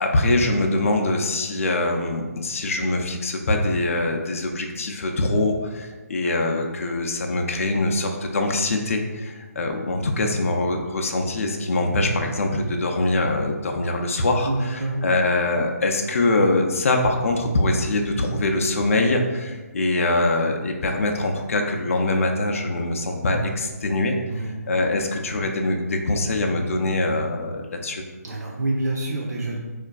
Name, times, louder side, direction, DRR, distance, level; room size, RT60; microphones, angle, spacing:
voice 1, 0.0-24.2 24.7-28.0, left 2 dB, 55° left, 2 dB, 0.4 m, -23 dB
voice 2, 14.5-15.1 24.3-24.6 28.2-29.6, right 2 dB, 85° right, -2 dB, 0.6 m, -27 dB
4.4 x 2.4 x 2.2 m, 1.2 s
hypercardioid pair, 170°, 9 cm